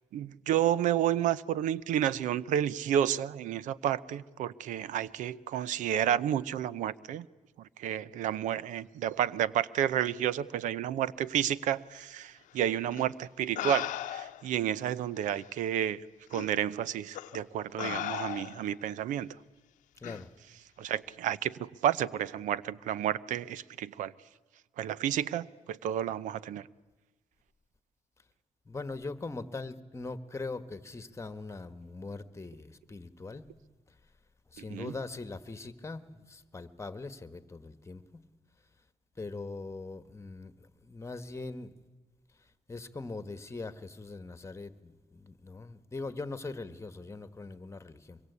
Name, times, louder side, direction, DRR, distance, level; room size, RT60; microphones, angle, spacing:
voice 1, 0.1-7.3 7.8-16.0 16.3-19.3 20.8-24.1 24.8-26.7 34.7-34.9, right 10 dB, 90° right, 19 dB, 0.7 m, -31 dB
sound 1, 12.9-13.0 13.6-14.5 15.4-15.5 16.3-16.5 17.1-17.4 17.8-18.7 20.0-20.2, left 13 dB, 85° left, 0.8 m, -36 dB
voice 2, 20.0-20.3 28.7-33.5 34.5-38.0 39.2-41.7 42.7-48.2, left 3 dB, 20° left, 12 dB, 1.6 m, -41 dB
24.5 x 22.5 x 8.3 m, 1.2 s
cardioid pair, 80°, 13 cm